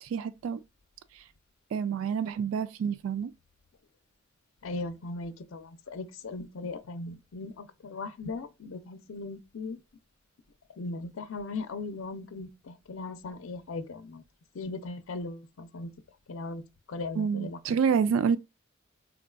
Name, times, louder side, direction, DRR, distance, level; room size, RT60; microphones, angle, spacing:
voice 1, 0.0-0.6 1.1-1.2 1.7-3.3 17.2-18.4, right 6 dB, 80° right, 0.3 m, -28 dB
voice 2, 4.6-9.8 10.8-14.2 14.5-15.9 16.3-16.6 16.9-17.8, left 3 dB, 85° left, 0.5 m, -38 dB
3.6 x 2.3 x 2.2 m
head